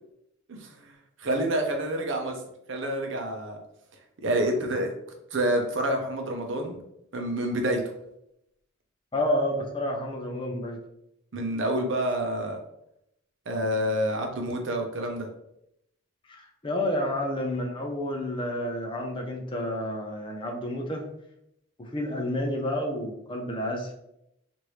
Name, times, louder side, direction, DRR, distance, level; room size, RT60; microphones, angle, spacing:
voice 1, 0.5-2.4 2.7-3.6 4.2-4.9 5.3-6.8 7.1-7.8 11.3-12.6 13.5-15.3, right 1 dB, 65° right, 3 dB, 0.6 m, -28 dB
voice 2, 9.1-10.8 13.6-13.7 16.3-21.1 21.8-23.9, left 1 dB, 25° left, 2 dB, 0.5 m, -30 dB
3.0 x 2.5 x 3.1 m, 0.80 s
head